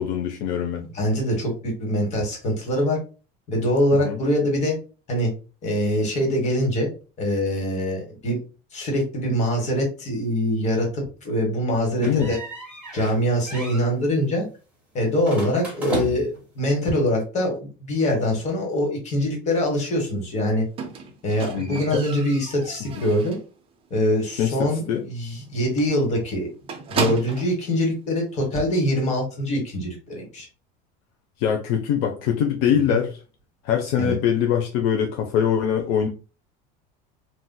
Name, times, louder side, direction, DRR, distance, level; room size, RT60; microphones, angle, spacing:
voice 1, 0.0-0.8 4.0-4.2 11.9-12.3 21.5-22.0 24.4-25.0 31.4-33.2 33.6-36.1, left 8 dB, 65° left, 0.5 m, -23 dB
voice 2, 0.9-3.0 3.5-4.8 5.1-5.3 5.6-6.9 7.2-8.4 8.7-12.4 12.9-14.5 14.9-20.7 21.2-23.4 23.9-26.5 26.9-30.5 32.9-33.0 34.0-34.2, equal, 35° left, 1.3 m, -23 dB
sound 1, 12.0-13.2 13.5-13.9 15.2-16.4, right 1 dB, 5° right, 1.4 m, -33 dB
Squeak, 20.8-23.5 23.9-24.3 24.6-24.7 25.0-25.1 25.4-25.5 25.8-27.6 28.5-28.6, right 5 dB, 25° right, 0.5 m, -33 dB
3.9 x 2.4 x 2.2 m
cardioid pair, 150°, 20 cm